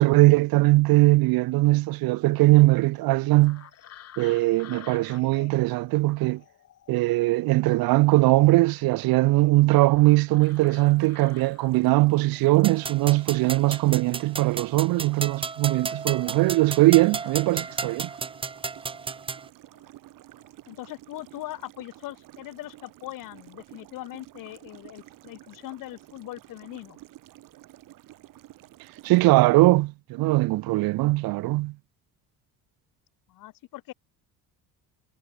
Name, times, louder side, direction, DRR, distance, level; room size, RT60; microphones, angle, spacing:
voice 1, 0.0-3.6 4.2-6.4 6.9-18.1 29.0-31.7, right 20 dB, 85° right, 1.2 m, -20 dB
sound 1, 3.4-13.4 13.7-15.7 16.2-18.5 19.7-19.9 20.4-20.8 21.1-21.4, left 11 dB, 45° left, 4.5 m, -52 dB
sound 2, 10.4-29.3, right 15 dB, 65° right, 4.3 m, -51 dB
sound 3, 12.6-19.5, right 5 dB, 15° right, 0.9 m, -34 dB
voice 2, 20.7-27.0 33.3-33.9, left 16 dB, 65° left, 3.1 m, -40 dB
cardioid pair, 175°, 35 cm